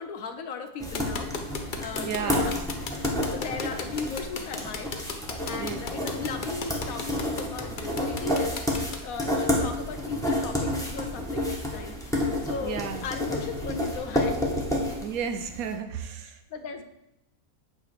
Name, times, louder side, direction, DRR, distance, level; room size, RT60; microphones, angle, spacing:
voice 1, 0.0-1.4 1.8-2.5 3.0-4.9 5.4-8.5 9.0-14.5 16.5-16.8, left 5 dB, 75° left, 7 dB, 1.2 m, -37 dB
sound 1, 0.8-15.6, left 1 dB, 5° left, 1.1 m, -30 dB
sound 2, 0.9-9.0, left 5 dB, 45° left, 0.7 m, -35 dB
voice 2, 2.0-2.6 5.5-5.8 12.6-13.0 15.0-16.4, right 7 dB, 80° right, 7 dB, 1.2 m, -33 dB
8.7 x 3.2 x 6.6 m, 0.87 s
omnidirectional pair, 1.5 m